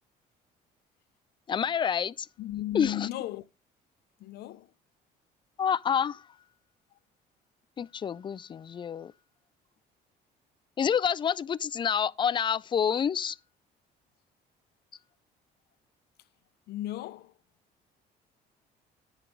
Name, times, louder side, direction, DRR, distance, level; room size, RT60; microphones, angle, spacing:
voice 1, 1.5-2.3 2.7-3.1 5.6-6.2 7.8-9.1 10.8-13.4, left 7 dB, 30° left, 0.4 m, -28 dB
voice 2, 2.4-3.5 4.2-4.7 16.7-17.3, left 14 dB, 70° left, 0.6 m, -35 dB
9.8 x 4.5 x 5.0 m
cardioid pair, 110°, 17 cm